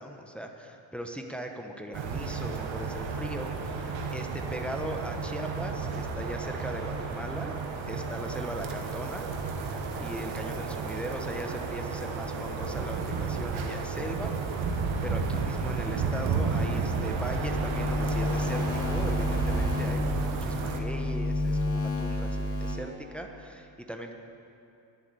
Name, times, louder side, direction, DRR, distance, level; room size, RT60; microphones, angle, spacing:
voice 1, 0.0-7.6 7.9-9.3 10.0-14.4 14.7-24.1, equal, ahead, 3 dB, 1.0 m, -39 dB
sound 1, 1.9-20.8, right 4 dB, 70° right, 1.5 m, -32 dB
sound 2, 17.3-22.7, left 1 dB, 30° left, 2.5 m, -30 dB
11.0 x 7.3 x 9.5 m, 2.7 s
cardioid pair, 90°, 48 cm